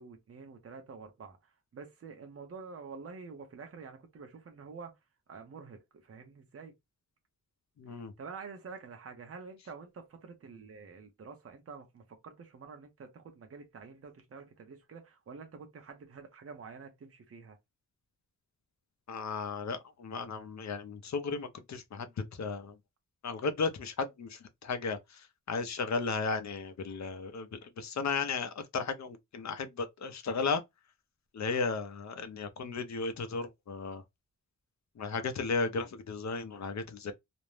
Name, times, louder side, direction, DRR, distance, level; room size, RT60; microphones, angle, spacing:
voice 1, 0.0-1.4 1.7-4.9 5.3-6.7 7.9-17.6, right 5 dB, 45° right, 0.6 m, -48 dB
voice 2, 7.8-8.1 19.1-22.1 22.4-22.7 23.2-25.0 25.5-30.6 31.3-34.0 35.0-37.1, left 4 dB, 55° left, 0.6 m, -35 dB
2.5 x 2.1 x 3.1 m
wide cardioid pair, 165°, 33 cm